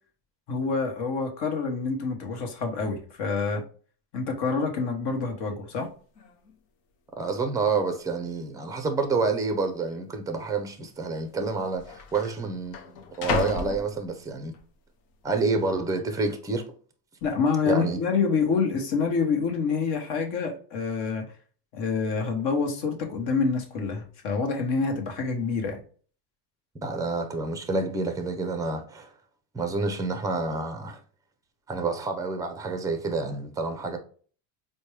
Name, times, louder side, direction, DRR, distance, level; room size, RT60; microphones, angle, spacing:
voice 1, 0.5-3.6 4.1-5.9 17.2-21.2 21.7-25.8, left 5 dB, 55° left, 1.1 m, -27 dB
sound 1, 5.8-5.9 6.2-6.6 7.3-7.4 8.1-8.6 8.9-9.0 9.9-10.1 11.1-11.2 11.4-14.6 15.1-15.5, left 6 dB, 90° left, 0.8 m, -35 dB
voice 2, 7.2-14.6 15.2-16.6 17.7-18.0 26.7-29.1 29.5-31.0 31.7-34.0, right 3 dB, 10° right, 0.4 m, -28 dB
4.3 x 2.2 x 3.2 m
supercardioid pair, 115°, 49 cm